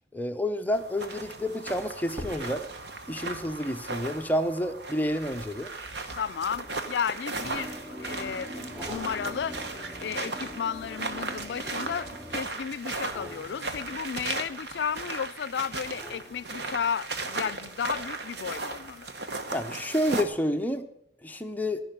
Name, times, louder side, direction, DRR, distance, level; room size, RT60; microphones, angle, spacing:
voice 1, 0.1-2.6 3.1-5.7 19.5-20.9 21.2-21.8, equal, 10° left, 0.7 m, -29 dB
sound 1, 0.7-20.2, right 3 dB, 75° right, 1.2 m, -37 dB
sound 2, 1.0-1.2 2.1-6.7 7.4-8.1 8.7-11.7 12.9-15.0 15.8-17.2 17.7-17.8, left 1 dB, 5° right, 1.3 m, -48 dB
voice 2, 6.2-9.6 10.0-19.1, left 7 dB, 75° left, 0.4 m, -33 dB
sound 3, 7.3-12.4, equal, 25° right, 2.4 m, -42 dB
14.0 x 5.9 x 8.7 m
head